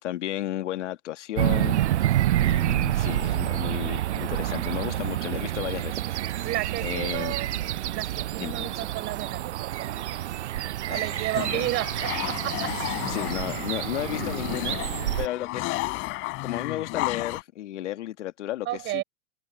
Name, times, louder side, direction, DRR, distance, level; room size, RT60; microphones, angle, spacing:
voice 1, 0.0-1.8 2.4-6.5 6.8-7.3 8.4-8.8 10.9-11.6 12.6-12.8 13.1-14.8 15.2-16.0 16.4-19.0, left 13 dB, 90° left, 2.0 m, -33 dB
sound 1, 1.4-15.3, right 13 dB, 75° right, 7.0 m, -28 dB
voice 2, 6.4-7.5 7.9-10.4 10.8-12.9 18.6-19.0, right 17 dB, 30° right, 6.6 m, -33 dB
sound 2, 11.3-17.4, left 22 dB, 35° left, 4.3 m, -33 dB
supercardioid pair, 160°, 35 cm